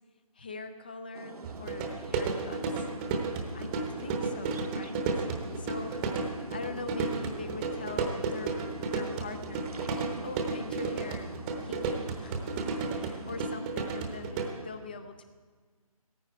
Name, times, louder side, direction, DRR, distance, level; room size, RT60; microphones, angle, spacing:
voice 1, 0.4-2.9 3.5-9.9 10.2-15.2, left 3 dB, 15° left, 9 dB, 0.4 m, -43 dB
sound 1, 1.1-13.6, right 4 dB, 75° right, 1.1 m, -45 dB
sound 2, 1.4-14.5, right 4 dB, 10° right, 0.9 m, -33 dB
16.5 x 14.5 x 4.5 m, 1.5 s
figure-of-eight pair, 165°, 19 cm